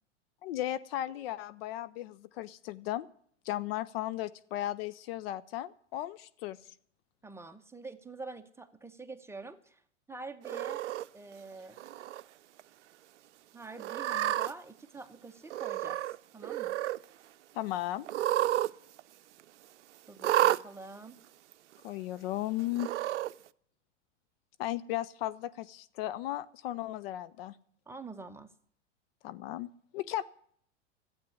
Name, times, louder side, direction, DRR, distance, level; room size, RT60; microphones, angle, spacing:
voice 1, 0.4-3.1 3.4-6.6 17.5-18.1 21.8-22.9 24.6-27.6 29.2-30.2, left 14 dB, 50° left, 16 dB, 0.7 m, -36 dB
voice 2, 7.2-9.8 10.1-10.8 11.1-11.8 13.5-16.0 16.3-16.8 20.1-21.2 27.9-28.5, right 3 dB, 5° right, 7 dB, 1.0 m, -46 dB
Cat, 10.4-11.0 11.8-12.2 12.6-12.7 13.8-14.5 15.5-16.2 16.4-17.0 18.0-18.7 19.0-19.1 20.2-20.6 21.5-21.6 22.7-23.3, right 13 dB, 70° right, 0.6 m, -30 dB
12.5 x 8.4 x 9.8 m, 0.62 s
hypercardioid pair, 95°, 37 cm